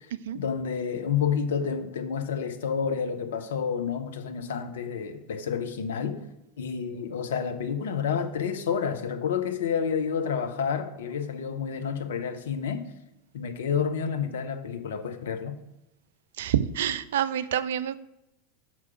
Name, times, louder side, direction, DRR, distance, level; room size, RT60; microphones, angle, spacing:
voice 1, 0.3-6.2 6.6-12.9 13.3-15.6, left 7 dB, 65° left, 0.7 m, -29 dB
voice 2, 16.4-18.0, right 10 dB, 60° right, 0.3 m, -27 dB
6.0 x 4.8 x 5.8 m
figure-of-eight pair, 80°, 0 cm